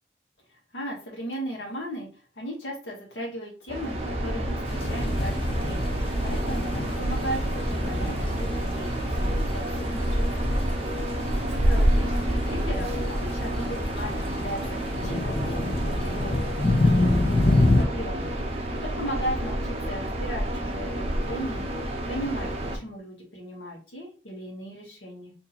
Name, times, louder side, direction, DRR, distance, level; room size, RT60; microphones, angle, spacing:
voice 1, 0.5-2.1 2.4-5.9 6.2-10.6 11.6-16.4 16.8-18.3 18.8-21.8 22.1-25.3, equal, 85° left, -2 dB, 1.1 m, -37 dB
sound 1, 3.7-22.8, right 1 dB, 35° right, 0.6 m, -28 dB
sound 2, 4.6-17.8, left 2 dB, 30° left, 0.4 m, -28 dB
2.8 x 2.6 x 4.0 m, 0.39 s
head